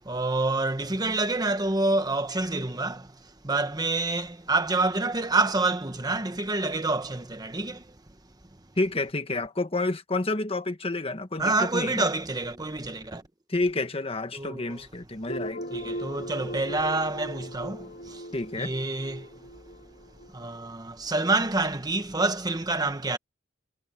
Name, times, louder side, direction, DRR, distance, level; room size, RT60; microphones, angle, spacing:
voice 1, 0.0-8.0 11.4-13.2 14.3-14.9 15.7-18.3 18.5-19.3 20.3-23.2, right 2 dB, 20° right, 1.4 m, -27 dB
voice 2, 8.8-12.1 13.5-15.7 18.3-18.7, left 2 dB, 30° left, 1.5 m, -29 dB
sound 1, 15.3-20.7, equal, 55° left, 2.0 m, -38 dB
head